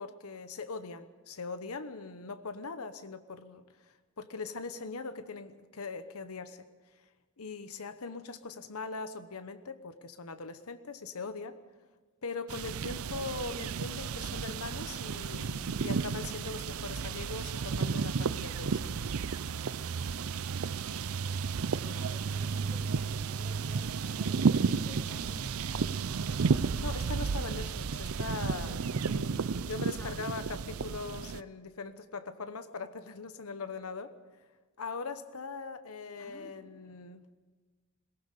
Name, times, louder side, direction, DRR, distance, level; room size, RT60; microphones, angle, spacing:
voice 1, 0.0-6.7 7.4-11.6 12.2-19.1 26.8-34.1 34.8-37.2, left 4 dB, 90° left, 10 dB, 1.0 m, -41 dB
sound 1, 12.5-31.4, right 5 dB, 80° right, 0.5 m, -32 dB
voice 2, 21.8-25.9 30.0-30.2 36.2-36.5 36.8-37.0, left 1 dB, 10° left, 1 dB, 2.6 m, -52 dB
21.5 x 18.5 x 6.8 m, 1.4 s
head